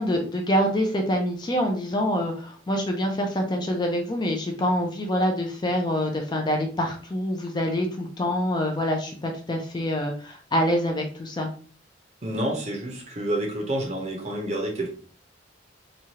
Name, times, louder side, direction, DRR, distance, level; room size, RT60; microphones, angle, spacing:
voice 1, 0.0-11.5, equal, 25° left, 3 dB, 0.4 m, -26 dB
voice 2, 12.2-14.9, right 1 dB, 35° right, 1 dB, 0.7 m, -28 dB
3.0 x 2.3 x 2.8 m, 0.42 s
head